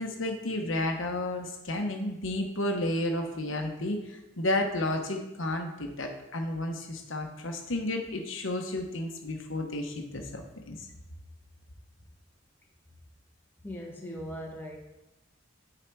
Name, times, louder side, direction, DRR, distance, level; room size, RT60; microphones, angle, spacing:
voice 1, 0.0-4.0 4.4-10.4 10.7-10.8, left 1 dB, 85° left, 3 dB, 1.1 m, -32 dB
voice 2, 13.6-14.8, equal, 10° left, -2 dB, 1.4 m, -39 dB
9.0 x 4.0 x 4.7 m, 1.0 s
head